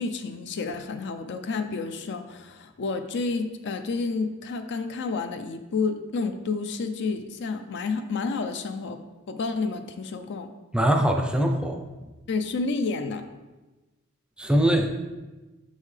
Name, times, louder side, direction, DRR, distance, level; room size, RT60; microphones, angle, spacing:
voice 1, 0.0-9.0 9.3-10.5 12.3-13.2, left 4 dB, 55° left, 8 dB, 0.4 m, -30 dB
voice 2, 10.7-11.8 14.4-14.9, right 1 dB, 5° right, 3 dB, 0.5 m, -22 dB
6.3 x 5.5 x 3.3 m, 1.2 s
head